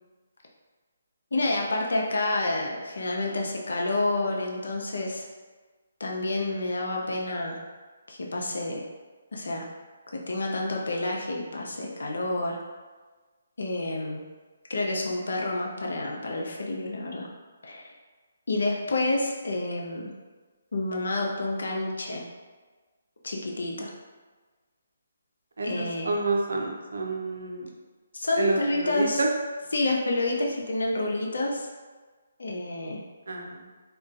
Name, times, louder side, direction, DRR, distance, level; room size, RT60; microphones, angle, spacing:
voice 1, 1.3-5.2 6.0-7.6 8.1-8.8 9.3-9.7 10.1-12.6 13.6-14.2 14.7-17.3 17.6-17.9 18.5-20.1 20.7-22.2 23.2-23.9 25.6-26.1 28.1-29.2 29.7-31.7 32.4-33.0, left 2 dB, 70° left, -1 dB, 0.5 m, -29 dB
voice 2, 25.6-27.7 28.4-29.3 33.3-33.7, right 3 dB, 75° right, 0 dB, 0.4 m, -29 dB
2.3 x 2.2 x 2.4 m, 1.4 s
figure-of-eight pair, 145°, 0 cm